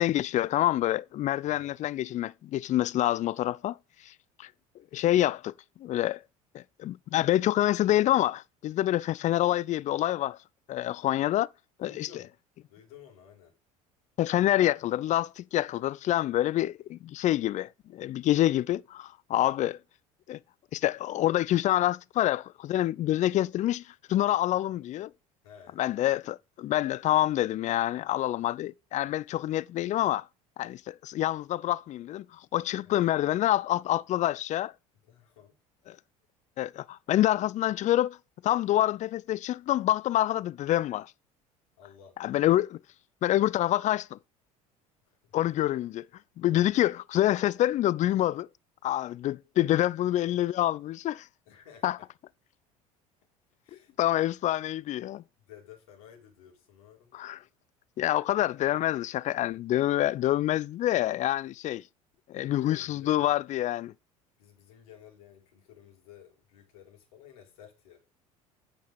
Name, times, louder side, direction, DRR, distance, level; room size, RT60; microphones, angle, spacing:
voice 1, 0.0-3.8 4.0-4.1 4.4-4.5 4.9-5.5 5.8-6.2 6.5-10.4 10.7-11.5 11.8-12.1 14.2-19.8 20.3-20.4 20.7-25.1 25.8-30.3 30.6-34.7 35.9-36.0 36.6-38.2 38.4-41.1 42.2-42.8 43.2-44.2 45.3-46.1 46.4-48.5 48.8-51.3 51.8-52.0 54.0-55.2 57.1-57.4 58.0-61.8 62.3-63.9, left 13 dB, 40° left, 0.5 m, -27 dB
voice 2, 1.4-1.8 11.8-12.3 12.7-13.5 25.4-25.8 32.9-33.0 35.1-35.5 41.8-42.2 45.2-45.3 46.5-46.6 51.5-51.9 53.6-54.0 55.4-57.1 62.4-63.3 64.4-68.0, left 9 dB, 75° left, 5.0 m, -52 dB
9.3 x 7.6 x 5.2 m
hypercardioid pair, 65°, 18 cm